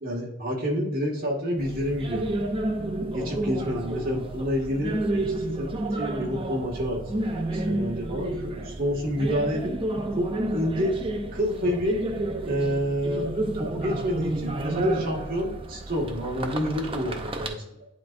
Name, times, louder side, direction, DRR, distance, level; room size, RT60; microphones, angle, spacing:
voice 1, 0.0-2.4 3.1-8.3 8.6-9.7 10.2-11.0 11.3-12.0 12.5-17.9, equal, 45° right, -3 dB, 1.7 m, -28 dB
sound 1, 1.6-17.5, right 1 dB, 25° right, 0.6 m, -31 dB
9.9 x 4.2 x 2.5 m, 0.83 s
head